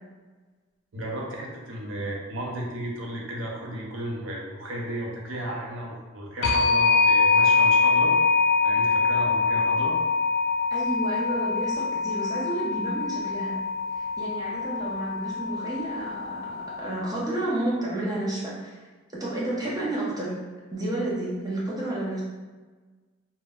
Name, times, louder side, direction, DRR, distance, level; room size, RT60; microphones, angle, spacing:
voice 1, 0.9-8.1 8.6-9.9, right 1 dB, 75° right, -2 dB, 0.6 m, -34 dB
sound 1, 6.4-17.0, left 4 dB, 80° left, 0.3 m, -24 dB
voice 2, 10.7-13.6 13.9-18.8 19.1-20.4 20.7-22.2, right 1 dB, 20° right, -6 dB, 0.6 m, -31 dB
2.1 x 2.0 x 3.5 m, 1.3 s
head